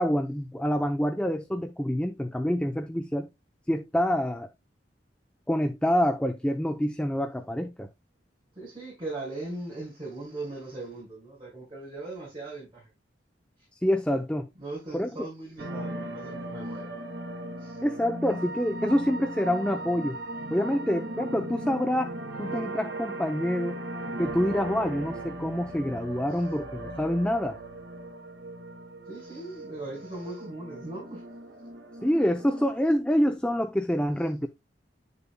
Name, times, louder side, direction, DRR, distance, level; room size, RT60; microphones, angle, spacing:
voice 1, 0.0-3.3 3.7-4.5 5.5-7.9 13.8-14.5 14.9-15.1 17.8-20.2 20.5-23.8 24.2-27.6 32.0-34.5, equal, 5° left, 0.6 m, -26 dB
voice 2, 8.5-12.8 13.6-13.7 14.6-16.9 17.6-17.8 26.3-26.5 29.0-31.2, right 2 dB, 30° right, 5.1 m, -39 dB
sound 1, 15.6-32.8, right 1 dB, 60° right, 2.1 m, -38 dB
11.0 x 6.9 x 2.2 m
head